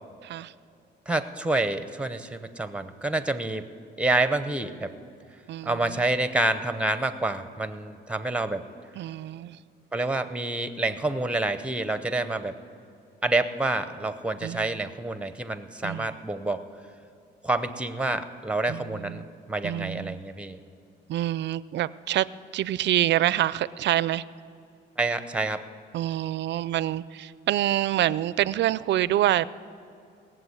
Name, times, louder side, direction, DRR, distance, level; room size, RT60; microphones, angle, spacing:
voice 1, 0.2-0.5 5.5-6.0 9.0-9.6 14.4-14.8 15.8-16.1 18.7-19.3 19.6-20.2 21.1-22.3 22.5-24.2 25.9-29.5, right 13 dB, 65° right, 18 dB, 0.4 m, -26 dB
voice 2, 1.1-3.7 4.0-4.9 5.6-8.6 9.9-12.5 13.2-16.6 17.4-20.6 25.0-25.6, right 2 dB, 5° right, 11 dB, 0.8 m, -28 dB
18.0 x 7.6 x 8.1 m, 2.5 s
cardioid pair, 90°, 20 cm